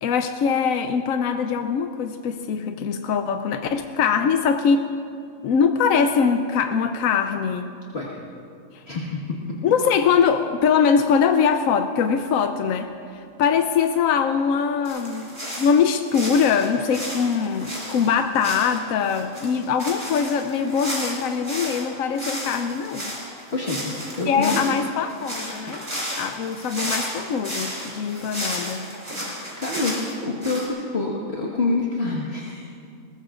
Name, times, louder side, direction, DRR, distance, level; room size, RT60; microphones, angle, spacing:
voice 1, 0.0-4.9 5.4-7.7 8.7-8.8 9.6-12.9 13.4-23.1 24.3-25.8 26.1-28.8, left 6 dB, 80° left, 7 dB, 1.0 m, -22 dB
voice 2, 8.9-9.4 23.5-24.6 29.6-30.0 30.2-32.6, left 3 dB, 50° left, -5 dB, 1.8 m, -26 dB
sound 1, 14.8-21.8 22.1-30.7, equal, 25° right, 4.0 m, -33 dB
21.5 x 20.0 x 2.5 m, 2.4 s
omnidirectional pair, 1.4 m